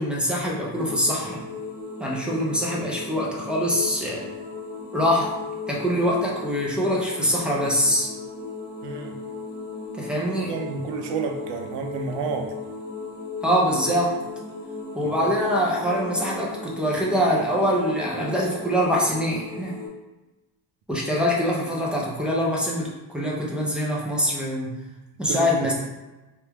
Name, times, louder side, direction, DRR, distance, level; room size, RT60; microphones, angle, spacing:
voice 1, 0.0-1.4 2.0-4.3 4.9-5.4 5.7-8.1 9.9-10.5 13.4-14.2 14.9-19.8 20.9-24.8 25.2-25.7, equal, 5° right, -5 dB, 0.3 m, -24 dB
sound 1, 0.7-19.9, left 3 dB, 25° right, 1.0 m, -37 dB
voice 2, 8.8-9.1 10.5-12.5 15.0-15.3 25.3-25.7, right 5 dB, 90° right, 4 dB, 0.6 m, -30 dB
3.0 x 2.2 x 3.3 m, 1.1 s
cardioid pair, 155°, 41 cm